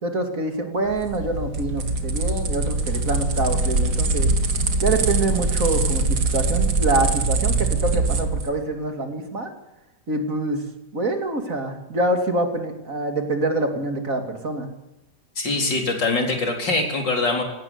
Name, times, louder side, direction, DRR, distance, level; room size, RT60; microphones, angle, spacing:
voice 1, 0.0-4.3 4.8-9.5 10.1-10.6 10.9-14.7, right 2 dB, 50° right, 4 dB, 3.0 m, -25 dB
sound 1, 0.9-8.5, right 3 dB, 65° right, 2.3 m, -23 dB
voice 2, 15.4-17.4, left 3 dB, 85° left, 2 dB, 4.6 m, -23 dB
18.5 x 17.0 x 9.7 m, 0.97 s
omnidirectional pair, 1.9 m